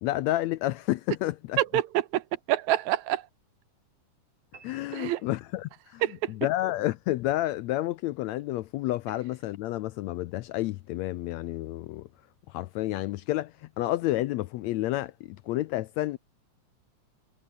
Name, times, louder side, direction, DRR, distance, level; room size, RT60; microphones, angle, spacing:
voice 1, 0.0-1.6 4.6-6.0 6.3-12.1 12.5-16.2, left 16 dB, 80° left, 1.7 m, -30 dB
voice 2, 1.6-3.3 4.9-5.2 6.0-6.3, right 14 dB, 75° right, 2.0 m, -27 dB
sound 1, 4.5-6.1, right 5 dB, 50° right, 5.0 m, -56 dB
omnidirectional pair, 3.6 m